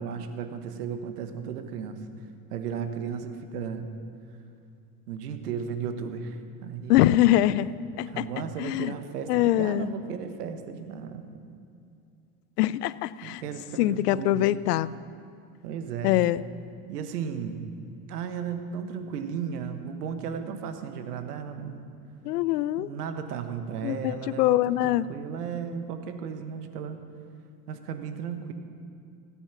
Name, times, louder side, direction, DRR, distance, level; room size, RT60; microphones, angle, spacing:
voice 1, 0.0-2.0 2.5-3.8 5.1-7.0 8.0-11.3 13.2-14.5 15.6-16.1 16.9-17.7 18.1-21.9 22.8-27.0 27.7-28.5, right 7 dB, 85° right, 8 dB, 1.3 m, -35 dB
voice 2, 6.9-8.3 8.6-8.9 9.3-9.9 12.6-13.4 13.8-14.9 16.0-16.4 22.2-22.9 23.8-25.0, left 14 dB, 85° left, 18 dB, 0.6 m, -23 dB
17.0 x 8.6 x 5.9 m, 2.5 s
hypercardioid pair, 85°, 46 cm